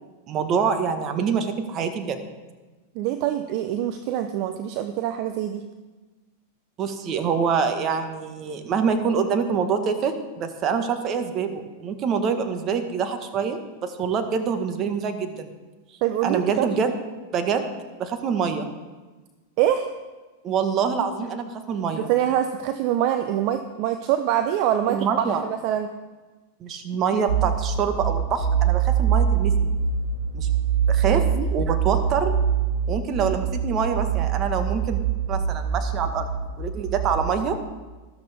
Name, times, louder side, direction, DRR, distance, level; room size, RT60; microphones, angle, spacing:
voice 1, 0.3-2.3 6.8-15.5 16.2-16.9 17.3-17.6 18.0-18.7 20.4-22.1 24.9-25.4 26.6-29.7 30.3-30.5 30.9-31.2 31.5-32.3 32.9-35.0 35.3-36.3 36.6-37.6, right 6 dB, 35° right, 7 dB, 1.5 m, -25 dB
voice 2, 2.9-5.7 16.0-16.7 19.6-19.9 22.0-25.9 31.1-31.5, right 11 dB, 50° right, 8 dB, 0.7 m, -25 dB
sound 1, 27.3-37.3, right 7 dB, 75° right, 2.0 m, -24 dB
13.5 x 12.0 x 3.6 m, 1.3 s
hypercardioid pair, 105°, 0 cm